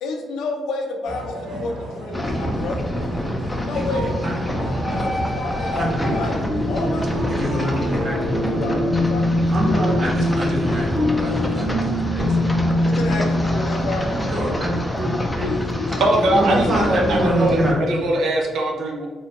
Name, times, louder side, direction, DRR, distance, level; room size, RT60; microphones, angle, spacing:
voice 1, 0.0-2.9 3.6-4.2 4.9-6.4 6.7-7.1 8.5-10.0 10.3-10.9 12.8-14.4 14.7-14.9 15.4-17.2, left 3 dB, 80° left, 2 dB, 0.5 m, -30 dB
sound 1, 1.0-8.1, equal, 85° right, 1.0 m, -33 dB
sound 2, 2.1-17.7, equal, 10° left, 0.5 m, -26 dB
voice 2, 3.7-4.3 5.8-6.2 7.3-8.8 9.5-12.3 14.3-15.5 16.3-17.8, right 1 dB, 40° right, -4 dB, 1.2 m, -25 dB
sound 3, 6.5-13.7, left 1 dB, 10° right, 1.0 m, -23 dB
voice 3, 16.0-19.1, right 1 dB, 70° right, 0 dB, 0.6 m, -21 dB
3.3 x 2.7 x 2.9 m, 1.5 s
cardioid pair, 90°, 0 cm